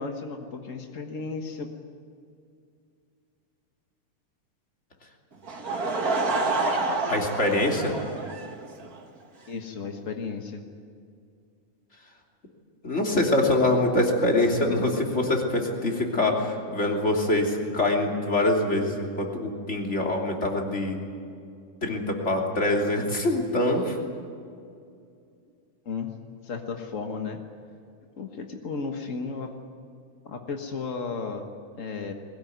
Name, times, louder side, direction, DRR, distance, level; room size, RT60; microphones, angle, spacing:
voice 1, 0.0-1.7 9.5-10.6 25.8-26.1 26.4-27.4 28.2-29.5 30.2-31.4 31.7-32.1, left 4 dB, 65° left, 4 dB, 0.7 m, -34 dB
Laughter / Crowd, 5.4-9.0, right 3 dB, 35° right, 1.8 m, -28 dB
voice 2, 7.1-7.9 12.8-21.0 21.8-24.0, left 1 dB, 20° left, 0 dB, 3.1 m, -24 dB
21.5 x 19.5 x 9.4 m, 2.3 s
omnidirectional pair, 3.7 m